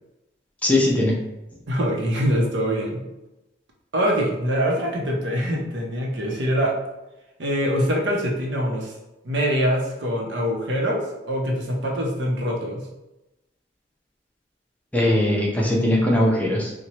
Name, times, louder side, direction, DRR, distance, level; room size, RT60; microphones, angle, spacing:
voice 1, 0.6-1.2 14.9-16.7, left 1 dB, 10° left, -3 dB, 0.6 m, -20 dB
voice 2, 1.7-3.0 3.9-6.8 7.4-8.9 9.2-12.9, equal, 70° right, 0 dB, 0.7 m, -24 dB
4.3 x 2.2 x 2.9 m, 0.96 s
head